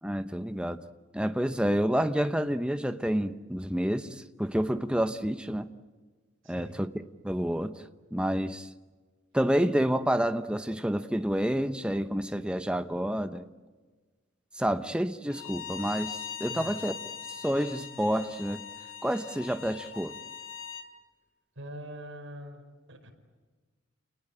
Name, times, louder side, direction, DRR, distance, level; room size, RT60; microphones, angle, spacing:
voice 1, 0.0-0.8 1.1-5.7 6.5-6.9 7.2-7.7 8.1-8.7 9.3-13.4 14.6-16.9 17.3-18.6 19.0-20.1, equal, 5° right, 0.9 m, -29 dB
voice 2, 6.4-6.7 16.5-16.9 21.5-22.6 22.9-23.1, equal, 70° right, 5.2 m, -43 dB
Bowed string instrument, 15.3-20.9, left 8 dB, 70° left, 2.7 m, -41 dB
29.5 x 20.0 x 8.9 m
head